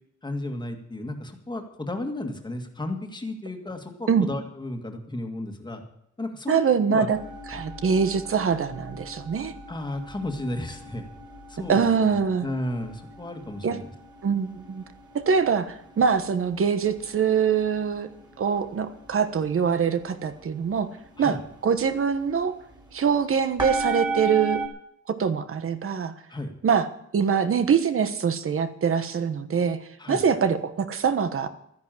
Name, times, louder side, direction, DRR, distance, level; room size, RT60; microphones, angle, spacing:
voice 1, 0.2-5.8 6.2-6.6 6.9-7.1 7.5-7.6 9.7-11.1 11.5-13.9 21.2-21.4 26.3-26.5 30.0-30.2, left 1 dB, 15° left, 4 dB, 2.0 m, -33 dB
voice 2, 6.5-7.2 7.5-9.5 11.7-12.5 13.6-13.8 14.2-14.8 15.1-18.1 18.4-20.9 21.2-21.4 21.6-22.5 22.9-24.6 25.1-26.1 26.6-26.9 27.1-29.8 30.1-31.5, right 6 dB, 45° right, 10 dB, 1.3 m, -23 dB
sound 1, 7.1-24.7, right 3 dB, 15° right, 2.8 m, -37 dB
13.5 x 10.5 x 7.6 m, 0.75 s
wide cardioid pair, 150°, 29 cm